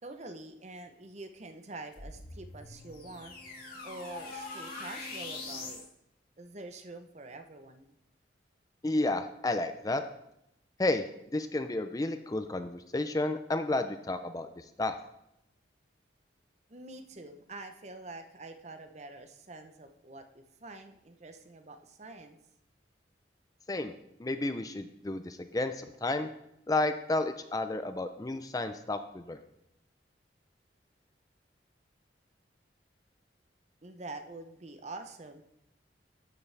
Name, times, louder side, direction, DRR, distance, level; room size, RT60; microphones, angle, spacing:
voice 1, 0.0-3.4 3.8-5.8 6.4-7.9 16.7-22.4 33.8-35.4, right 2 dB, 40° right, 7 dB, 0.7 m, -46 dB
sound 1, 1.9-5.9, left 3 dB, 55° left, 2.1 m, -43 dB
voice 2, 8.8-10.0 10.8-11.0 11.3-15.0 23.7-23.9 24.2-26.3 26.7-29.4, left 2 dB, 20° left, 9 dB, 0.4 m, -31 dB
12.5 x 7.1 x 3.3 m, 0.81 s
head